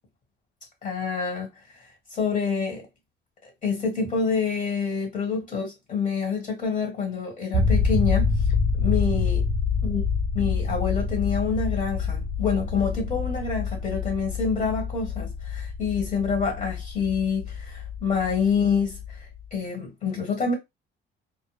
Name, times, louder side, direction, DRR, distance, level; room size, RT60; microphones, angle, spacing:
voice 1, 0.8-1.5 2.1-2.9 3.4-8.4 8.7-9.4 9.8-10.0 10.3-19.0 19.5-20.5, left 5 dB, 45° left, 1.3 m, -27 dB
sound 1, 7.5-19.5, left 4 dB, 25° right, 0.5 m, -27 dB
2.1 x 2.0 x 3.2 m
cardioid pair, 135°, 18 cm